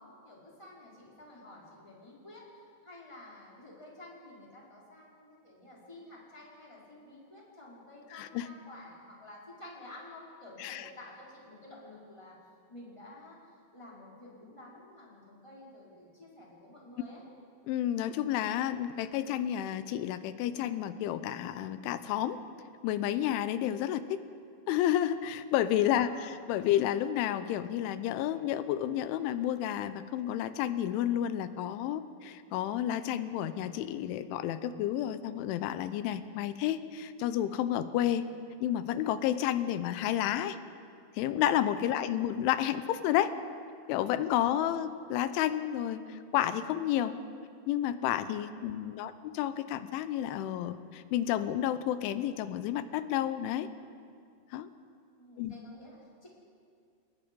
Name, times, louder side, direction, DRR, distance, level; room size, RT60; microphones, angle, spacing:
voice 1, 0.0-12.4 12.7-17.2 25.9-26.4 48.7-49.4 55.2-56.3, left 1 dB, 5° left, -4 dB, 3.9 m, -51 dB
voice 2, 8.1-8.5 10.6-10.9 17.7-22.4 22.8-24.2 24.7-38.3 38.6-40.6 41.2-43.3 43.9-47.2 47.7-53.7 54.5-54.7 55.4-55.5, left 11 dB, 90° left, 12 dB, 3.3 m, -31 dB
29.5 x 20.0 x 5.3 m, 2.3 s
omnidirectional pair, 5.4 m